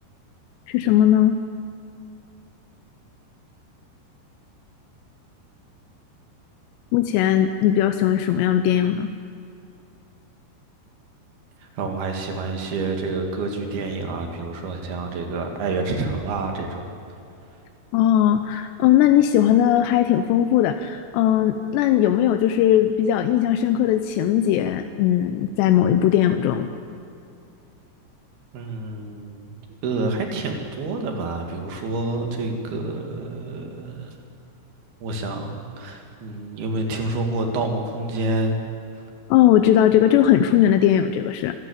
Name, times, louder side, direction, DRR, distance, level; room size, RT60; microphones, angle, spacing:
voice 1, 0.7-1.4 6.9-9.1 17.9-26.7 39.3-41.6, left 11 dB, 85° left, 8 dB, 2.9 m, -18 dB
voice 2, 11.6-16.9 28.5-29.5 29.8-34.1 35.0-38.6, right 3 dB, 70° right, 3 dB, 3.9 m, -28 dB
25.0 x 13.0 x 8.6 m, 2.6 s
omnidirectional pair, 4.8 m